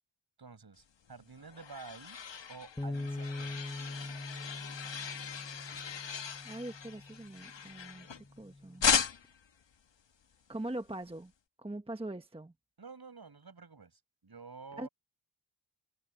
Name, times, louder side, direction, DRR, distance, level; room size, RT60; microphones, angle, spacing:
voice 1, 0.4-2.2 2.5-3.8 12.8-14.9, right 4 dB, 55° right, 6.8 m, -50 dB
sound 1, 1.1-8.4 8.8-9.5, left 7 dB, 70° left, 1.3 m, -36 dB
Bass guitar, 2.8-9.0, left 2 dB, 10° left, 0.9 m, -43 dB
voice 2, 6.4-8.9 10.5-11.3 11.6-12.5 14.8-14.9, right 1 dB, 10° right, 1.1 m, -42 dB
wide cardioid pair, 85°, 45 cm